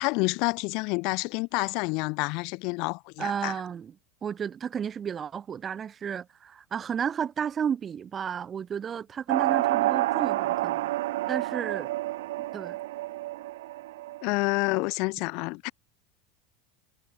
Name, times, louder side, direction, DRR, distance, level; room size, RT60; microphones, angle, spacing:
voice 1, 0.0-3.6 14.2-15.7, left 29 dB, 45° left, 1.9 m, -28 dB
voice 2, 3.2-3.9 4.2-10.9 11.3-11.9 12.5-12.8, right 7 dB, 20° right, 1.0 m, -32 dB
sound 1, 9.3-14.3, right 17 dB, 75° right, 1.0 m, -29 dB
supercardioid pair, 175°, 0 cm